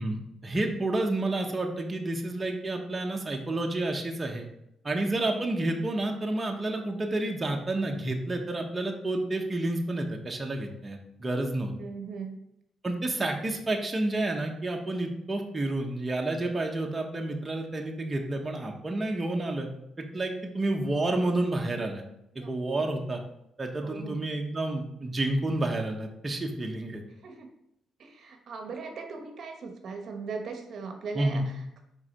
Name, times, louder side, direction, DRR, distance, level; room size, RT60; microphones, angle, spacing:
voice 1, 0.0-4.5 4.8-11.7 12.8-19.7 20.1-22.0 22.3-23.2 23.6-27.0 31.1-31.4, right 2 dB, 20° right, 1 dB, 1.0 m, -30 dB
voice 2, 11.7-12.3 22.3-22.5 23.8-24.2 27.2-27.5 28.0-31.8, right 4 dB, 60° right, 4 dB, 0.9 m, -39 dB
4.7 x 4.4 x 5.0 m, 0.78 s
cardioid pair, 90°, 0 cm